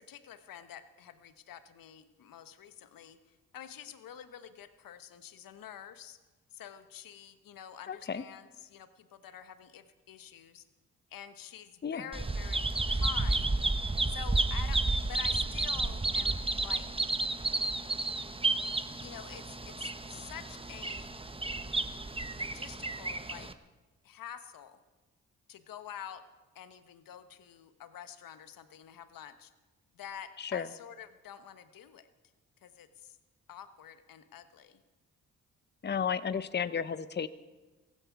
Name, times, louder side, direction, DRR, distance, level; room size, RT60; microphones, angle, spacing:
voice 1, 0.0-6.2 6.5-10.6 11.1-13.6 14.1-16.9 19.0-21.1 22.3-23.5 24.0-24.8 25.5-26.2 26.5-29.5 29.9-32.1 32.6-33.2 33.5-34.8, left 9 dB, 65° left, 11 dB, 1.3 m, -48 dB
voice 2, 7.9-8.2 11.8-12.0 30.4-30.7 35.8-37.3, left 7 dB, 30° left, 14 dB, 0.8 m, -33 dB
Bird vocalization bird call bird song, 12.1-23.5, right 2 dB, 15° right, 1.2 m, -32 dB
16.0 x 16.0 x 4.8 m, 1.2 s
hypercardioid pair, 40°, 37 cm